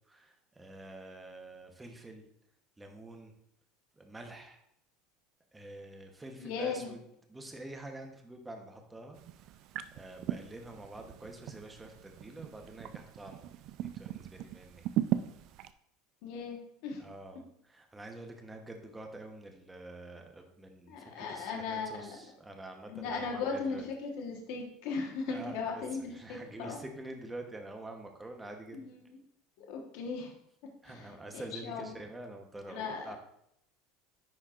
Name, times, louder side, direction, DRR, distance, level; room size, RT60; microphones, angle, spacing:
voice 1, 0.1-2.2 2.8-3.3 3.9-4.6 5.5-7.0 7.3-9.6 9.9-13.5 13.8-14.9 17.0-23.9 25.3-28.8 30.8-33.2, right 2 dB, 10° right, 3 dB, 0.9 m, -47 dB
voice 2, 6.4-6.9 16.2-17.0 20.9-22.2 22.9-26.8 28.7-29.2 29.6-30.3 30.8-31.8 32.7-33.2, left 5 dB, 70° left, 1 dB, 1.2 m, -38 dB
sound 1, 9.1-15.7, right 13 dB, 55° right, 0.3 m, -38 dB
10.0 x 4.3 x 2.5 m, 0.74 s
supercardioid pair, 130°, 0 cm